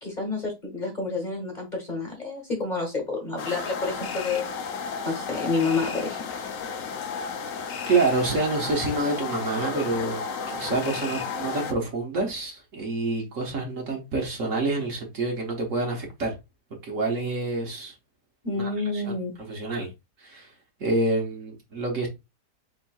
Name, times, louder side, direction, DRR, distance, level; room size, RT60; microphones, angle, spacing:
voice 1, 0.0-4.4 5.0-6.2 18.4-19.3, left 3 dB, 30° left, 1.2 m, -29 dB
sound 1, 3.4-11.7, left 5 dB, 60° left, 1.0 m, -33 dB
voice 2, 7.9-16.3 16.8-17.9 18.5-19.1 19.5-19.9 20.2-20.5 20.8-22.1, right 3 dB, 55° right, 1.4 m, -27 dB
4.5 x 4.4 x 2.3 m
omnidirectional pair, 1.8 m